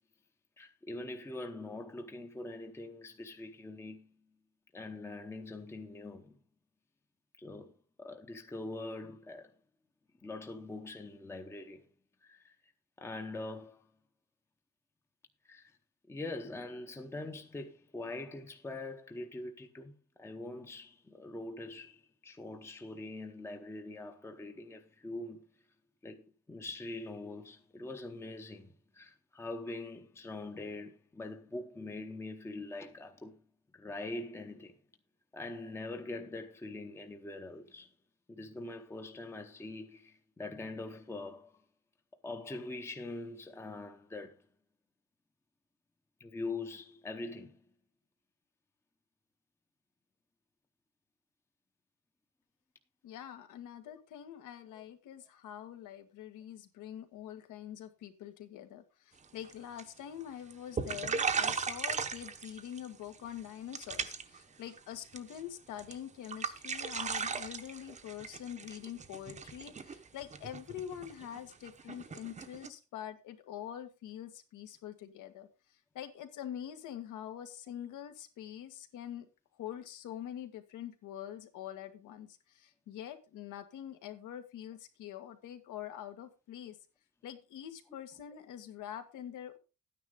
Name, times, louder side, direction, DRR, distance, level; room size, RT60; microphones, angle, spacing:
voice 1, 0.6-4.2 4.7-6.4 7.4-7.7 8.0-9.5 10.2-11.9 12.2-12.6 13.0-13.8 15.4-15.8 16.1-25.5 26.0-33.4 33.7-34.8 35.3-37.9 38.3-41.6 42.2-44.4 46.2-47.6 54.7-54.8, left 2 dB, 10° left, 0.8 m, -43 dB
voice 2, 53.0-79.3 79.6-86.8 87.2-89.6, left 10 dB, 75° left, 1.9 m, -45 dB
sound 1, 59.2-59.5 59.8-60.2 60.5-60.6 60.8-62.9 63.1-63.5 63.7-64.4 64.7-65.4 65.8-66.0 66.2-72.7, right 5 dB, 25° right, 0.8 m, -37 dB
12.5 x 9.7 x 3.7 m
cardioid pair, 175°, 30 cm